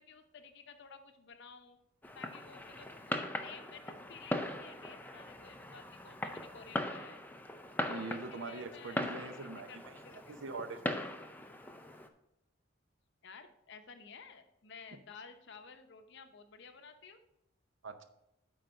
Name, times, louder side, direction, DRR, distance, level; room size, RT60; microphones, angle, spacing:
voice 1, 0.0-1.8 2.1-7.2 7.8-9.8 10.0-10.4 13.2-17.2, left 5 dB, 60° left, 8 dB, 0.7 m, -53 dB
Fireworks, 2.0-12.1, left 1 dB, 10° left, 0.4 m, -40 dB
voice 2, 7.9-11.1 17.8-18.0, right 3 dB, 60° right, 9 dB, 0.7 m, -43 dB
8.8 x 3.9 x 6.4 m, 0.84 s
head